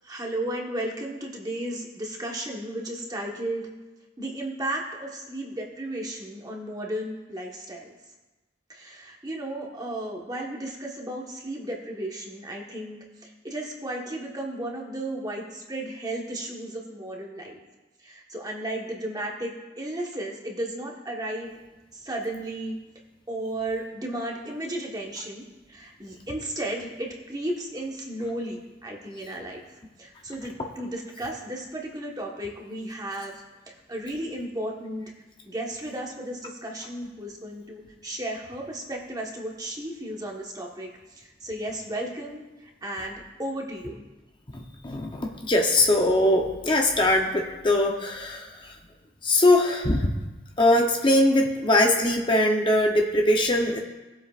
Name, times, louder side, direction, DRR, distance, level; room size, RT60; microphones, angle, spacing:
voice 1, 0.0-3.7 4.2-7.9 8.7-17.6 18.0-21.6 21.9-22.8 23.3-29.6 30.0-33.3 33.7-35.1 35.5-44.0, right 1 dB, 20° right, 0 dB, 1.3 m, -34 dB
voice 2, 44.5-48.7 49.2-50.1 50.6-53.8, left 1 dB, 25° left, 1 dB, 0.8 m, -21 dB
19.0 x 7.7 x 2.5 m, 1.1 s
head